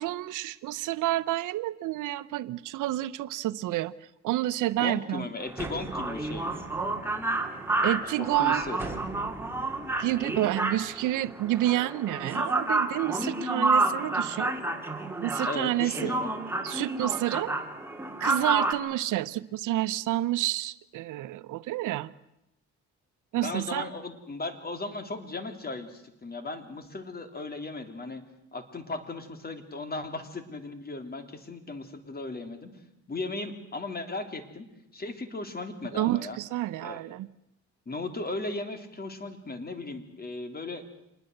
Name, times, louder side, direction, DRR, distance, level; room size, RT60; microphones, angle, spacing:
voice 1, 0.0-3.9 4.2-5.3 7.8-8.6 10.0-14.5 15.2-16.1 16.6-17.6 18.2-22.1 23.3-23.9 35.9-37.3, right 15 dB, 85° right, 0.8 m, -29 dB
voice 2, 4.7-6.7 8.2-8.9 15.4-16.3 23.3-28.2 28.5-32.7 33.1-34.7 34.9-36.4 36.8-37.0 37.9-40.8, left 2 dB, 30° left, 3.3 m, -36 dB
sound 1, 5.4-18.7, right 2 dB, 5° right, 3.0 m, -30 dB
26.0 x 20.5 x 8.0 m
cardioid pair, 90°, 30 cm